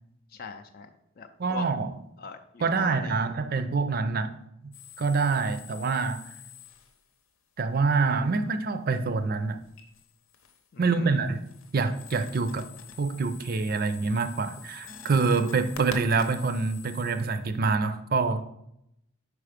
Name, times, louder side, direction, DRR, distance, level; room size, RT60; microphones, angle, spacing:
voice 1, 0.3-0.9 1.2-1.7 2.2-3.3 10.7-11.2, left 5 dB, 45° left, 0.4 m, -41 dB
voice 2, 1.4-1.9 2.6-4.4 5.0-6.2 7.6-9.6 10.8-12.7 13.0-18.4, right 4 dB, 45° right, 0.5 m, -26 dB
sound 1, 4.7-7.2 9.6-10.7 11.1-17.7, left 7 dB, 75° left, 0.8 m, -47 dB
4.9 x 4.9 x 5.0 m
head